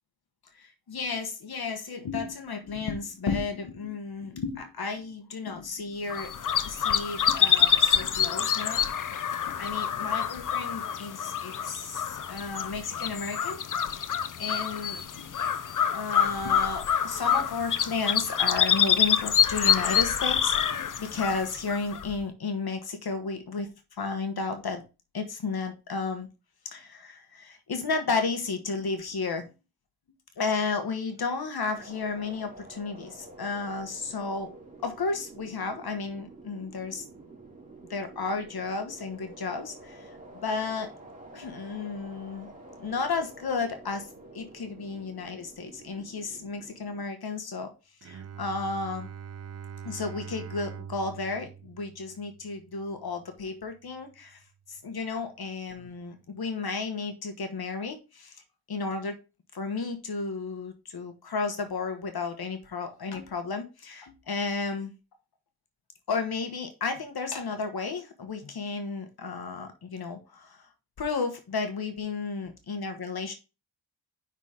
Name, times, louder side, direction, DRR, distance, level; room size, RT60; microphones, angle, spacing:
voice 1, 0.5-6.4 6.6-9.1 9.5-13.6 13.9-14.1 14.4-15.4 15.9-23.7 24.0-24.8 25.1-26.3 26.7-29.5 30.4-34.5 34.8-37.0 37.9-40.2 40.4-40.9 41.3-42.5 42.8-44.0 44.3-47.7 48.0-49.1 49.8-54.4 54.7-58.4 58.7-59.2 59.5-64.9 66.1-70.7 71.0-73.3, left 4 dB, 70° left, 7 dB, 1.2 m, -33 dB
sound 1, 6.1-22.2, left 8 dB, 55° left, 0.6 m, -26 dB
sound 2, 31.7-47.1, right 2 dB, 20° right, 2.9 m, -49 dB
Bowed string instrument, 48.0-53.7, right 7 dB, 40° right, 0.5 m, -43 dB
5.7 x 4.0 x 5.0 m, 0.29 s
cardioid pair, 65°, 38 cm